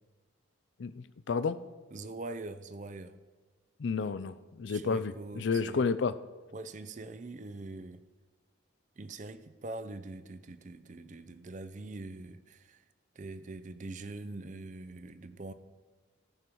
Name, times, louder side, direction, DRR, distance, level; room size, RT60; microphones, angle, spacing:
voice 1, 0.8-1.6 3.8-6.1, left 5 dB, 65° left, 0.4 m, -31 dB
voice 2, 1.9-3.1 4.7-5.8 6.5-8.0 9.0-12.8 13.2-15.5, right 2 dB, 40° right, 0.5 m, -43 dB
14.5 x 5.4 x 4.5 m
head